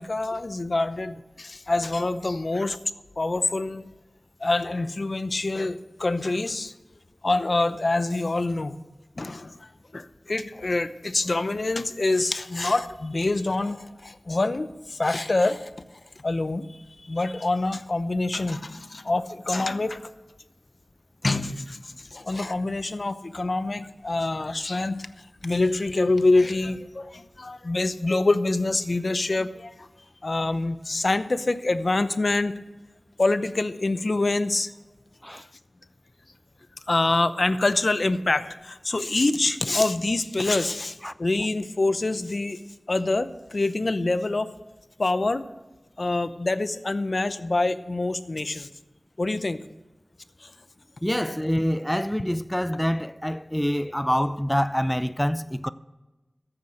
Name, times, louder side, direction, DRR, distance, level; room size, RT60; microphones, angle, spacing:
voice 1, 0.0-2.8 3.2-3.9 4.4-6.7 7.2-8.8 9.2-9.6 9.9-15.7 16.2-16.7 17.0-20.0 21.2-25.1 25.4-29.9 30.2-32.5 33.2-34.7 36.9-42.6 42.9-44.5 45.0-45.4 46.0-48.7 49.2-49.6 50.4-50.5, left 2 dB, 65° left, 0.7 m, -25 dB
voice 2, 51.0-55.7, equal, 10° left, 0.5 m, -26 dB
13.5 x 8.7 x 6.6 m
wide cardioid pair, 45°, 0 cm